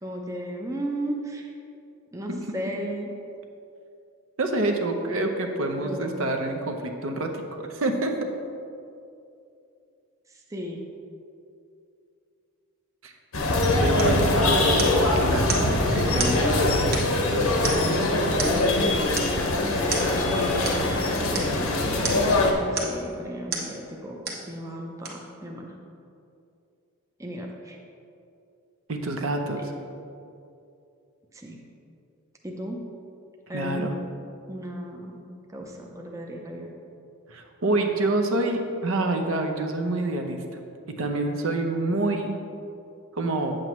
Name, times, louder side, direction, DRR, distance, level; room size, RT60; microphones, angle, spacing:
voice 1, 0.0-1.5 2.1-3.1 5.8-6.2 10.3-10.8 14.0-15.3 19.7-25.8 27.2-27.8 29.6-29.7 31.3-31.6 32.4-32.8 33.5-34.0 34.5-36.7, right 1 dB, 15° right, 0 dB, 0.5 m, -35 dB
voice 2, 4.4-8.1 13.0-13.1 13.8-16.4 28.9-29.6 33.5-33.9 37.3-40.4 41.0-42.3 43.1-43.5, right 2 dB, 70° right, 4 dB, 0.7 m, -27 dB
sound 1, 13.3-22.5, left 2 dB, 80° left, 1.0 m, -22 dB
sound 2, 14.0-14.2 14.8-15.1 15.5-15.7 16.2-16.4 16.9-17.3 17.6-18.0 18.4-18.7 19.2-19.4 19.9-20.1 20.6-20.8 21.3-21.5 22.0-22.3 22.7-23.0 23.5-23.7 24.2-24.5 25.0-25.1, right 4 dB, 45° right, 1.1 m, -31 dB
8.9 x 7.5 x 3.1 m, 2.6 s
head